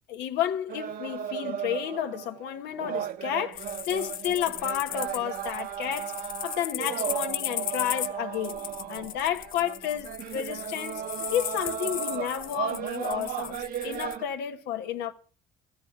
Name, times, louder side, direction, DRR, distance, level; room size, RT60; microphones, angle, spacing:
voice 1, 0.1-13.6 13.8-15.1, left 10 dB, 90° left, 1.2 m, -31 dB
sound 1, 0.7-14.3, right 9 dB, 60° right, 0.9 m, -35 dB
sound 2, 3.5-14.2, left 12 dB, 55° left, 0.6 m, -37 dB
14.0 x 9.5 x 6.0 m
cardioid pair, 110°, 17 cm